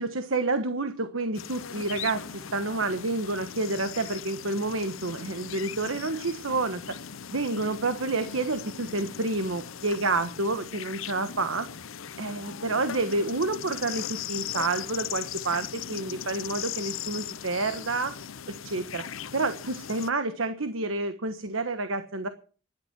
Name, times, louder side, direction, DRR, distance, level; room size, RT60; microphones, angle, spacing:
voice 1, 0.0-6.8 7.3-11.7 12.2-18.1 18.6-19.0 19.3-22.3, right 3 dB, 80° right, 9 dB, 1.3 m, -29 dB
sound 1, 1.3-20.1, left 9 dB, 85° left, 0.7 m, -39 dB
14.0 x 11.5 x 6.0 m, 0.39 s
head